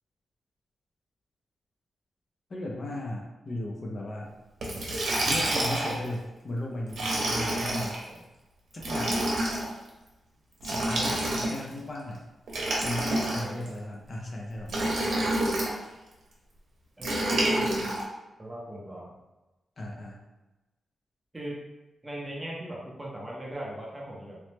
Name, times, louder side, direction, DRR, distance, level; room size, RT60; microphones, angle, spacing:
voice 1, 2.5-4.3 5.3-8.0 8.7-9.4 10.6-12.3 12.8-15.1 19.8-20.2, left 1 dB, 35° left, -1 dB, 0.4 m, -36 dB
Liquid, 4.6-6.0 6.9-8.0 8.8-9.7 10.6-11.7 12.5-13.7 14.7-15.7 17.0-18.0, right 1 dB, 75° right, 0.7 m, -28 dB
voice 2, 13.1-13.6 17.0-17.8 18.4-19.1 21.3-21.6 22.0-24.4, right 1 dB, 10° right, -4 dB, 0.6 m, -39 dB
3.0 x 2.0 x 3.1 m, 1.0 s
wide cardioid pair, 165°, 0 cm